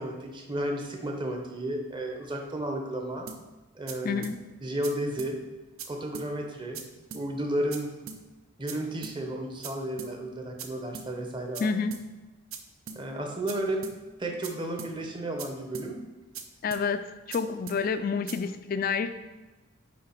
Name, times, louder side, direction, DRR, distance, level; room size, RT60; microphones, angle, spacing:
voice 1, 0.0-3.3 3.7-4.2 4.6-5.4 5.9-6.8 7.1-7.9 8.6-11.7 12.9-13.8 14.2-16.0, right 1 dB, 20° right, 2 dB, 0.8 m, -33 dB
sound 1, 3.3-3.4 3.9-4.0 4.2-4.4 4.8-4.9 5.2-5.3 5.8-5.9 6.1-6.3 6.7-6.8 7.1-7.2 7.7-7.8 8.1-8.2 8.7-8.8 9.0-9.2 9.6-9.7 10.0-10.1 10.6-10.7 10.9-11.1 11.5-11.6 11.9-12.0 12.5-12.6 12.9-13.0 13.5-13.6 13.8-14.0 14.4-14.5 14.8-14.9 15.4-15.5 15.7-15.9 16.3-16.4 16.7-16.8 17.3-17.4 17.7-17.8 18.3-18.4, right 7 dB, 75° right, 0.6 m, -40 dB
voice 2, 4.0-4.4 11.6-12.0 16.6-19.2, left 5 dB, 40° left, 11 dB, 0.3 m, -29 dB
8.6 x 3.4 x 4.4 m, 1.2 s
head